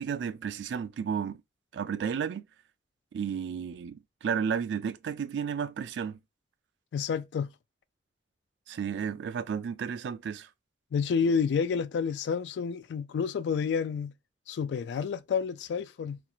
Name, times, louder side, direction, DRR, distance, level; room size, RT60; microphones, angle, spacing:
voice 1, 0.0-1.4 1.7-2.5 3.1-6.2 8.7-10.5, right 7 dB, 85° right, 0.3 m, -32 dB
voice 2, 6.9-7.5 10.9-14.1 14.5-16.2, left 6 dB, 80° left, 0.3 m, -29 dB
2.4 x 2.4 x 2.9 m
head